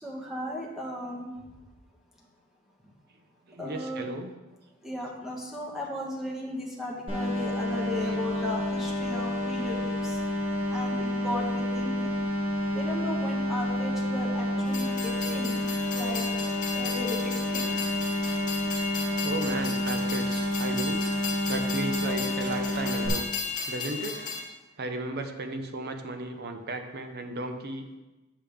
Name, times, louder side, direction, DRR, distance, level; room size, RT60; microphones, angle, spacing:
voice 1, 0.0-1.3 3.6-4.1 4.8-10.2 10.7-12.1 12.7-15.6 15.9-17.7, left 1 dB, ahead, -3 dB, 1.3 m, -36 dB
voice 2, 3.5-4.3 8.0-8.5 9.0-9.2 14.1-14.2 19.2-21.0 21.5-23.3 23.7-24.3 24.8-28.0, right 2 dB, 50° right, 6 dB, 0.7 m, -35 dB
sound 1, 7.1-23.1, left 1 dB, 25° right, 1.7 m, -29 dB
Train, 14.7-24.4, left 5 dB, 35° left, 0.9 m, -35 dB
7.4 x 6.8 x 3.5 m, 1.1 s
head